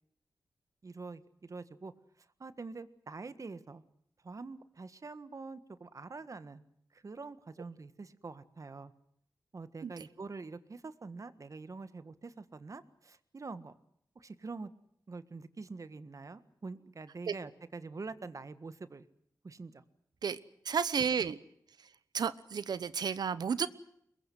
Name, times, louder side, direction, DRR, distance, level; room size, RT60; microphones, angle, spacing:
voice 1, 0.8-1.9 2.4-3.8 4.2-6.6 6.9-8.9 9.5-13.8 14.1-14.7 15.1-19.1 19.4-19.8, right 3 dB, 50° right, 13 dB, 1.6 m, -45 dB
voice 2, 20.6-21.4 22.1-23.7, right 6 dB, 80° right, 16 dB, 1.0 m, -32 dB
23.5 x 21.5 x 7.8 m, 0.72 s
cardioid pair, 55°, 7 cm